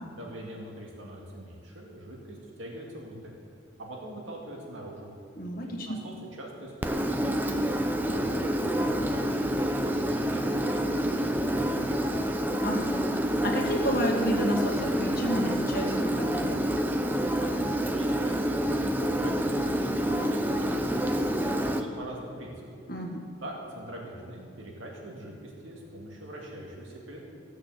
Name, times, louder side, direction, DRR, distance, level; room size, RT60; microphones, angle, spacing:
voice 1, 0.1-3.3 3.8-5.1 5.6-7.6 8.0-9.4 9.8-12.2 17.4-22.8 23.4-27.2, right 1 dB, 90° right, -2 dB, 2.4 m, -42 dB
voice 2, 5.4-6.0 12.6-16.6 22.9-23.3, equal, 50° left, 0 dB, 1.9 m, -31 dB
Engine, 6.8-21.8, equal, 10° right, 0.6 m, -28 dB
16.0 x 6.5 x 7.6 m, 2.4 s
head